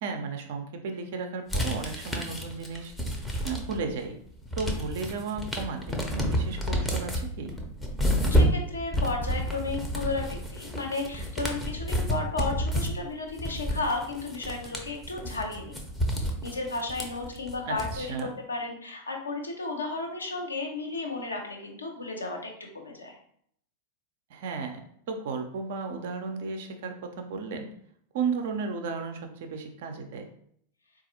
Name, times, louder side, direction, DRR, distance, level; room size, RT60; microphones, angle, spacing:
voice 1, 0.0-2.9 3.4-4.2 4.6-7.5 17.7-18.3 24.3-24.8 25.1-27.7 28.1-30.2, right 5 dB, 55° right, 4 dB, 0.5 m, -34 dB
sound 1, 1.5-3.9 4.3-18.2, equal, 5° left, 0.6 m, -29 dB
voice 2, 8.3-15.8 16.2-23.2, left 3 dB, 75° left, 1 dB, 0.7 m, -34 dB
3.9 x 2.4 x 2.7 m, 0.66 s
figure-of-eight pair, 90°, 0 cm